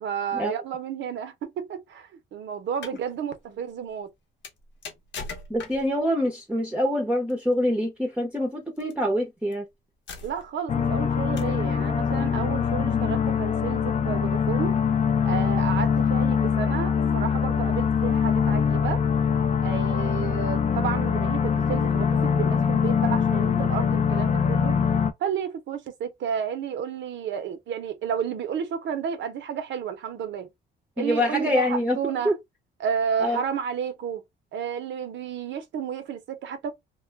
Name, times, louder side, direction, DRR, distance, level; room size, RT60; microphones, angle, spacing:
voice 1, 0.0-4.1 10.2-14.7 15.2-19.0 19.6-24.8 25.2-30.5 31.0-32.3 32.8-34.2 34.5-36.7, right 7 dB, 70° right, 0.7 m, -31 dB
sound 1, 2.6-3.0 4.4-6.0 7.3-7.5 8.8-8.9 9.5-9.6 10.1-10.6 11.4-11.7, left 4 dB, 65° left, 0.9 m, -40 dB
voice 2, 5.5-9.7 31.0-32.0 32.2-32.3 33.2-33.4, equal, 5° right, 0.7 m, -25 dB
sound 2, 10.7-25.1, left 6 dB, 35° left, 0.5 m, -23 dB
2.2 x 2.1 x 3.2 m
cardioid pair, 90°, 20 cm